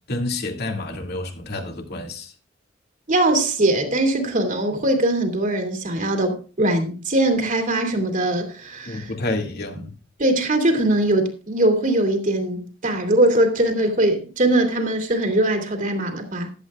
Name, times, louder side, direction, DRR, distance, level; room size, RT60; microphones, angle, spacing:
voice 1, 0.1-2.3 8.9-9.9, left 2 dB, 55° left, 2.2 m, -29 dB
voice 2, 3.1-9.1 10.2-16.5, right 1 dB, 45° right, 2.6 m, -21 dB
14.5 x 11.0 x 2.4 m
head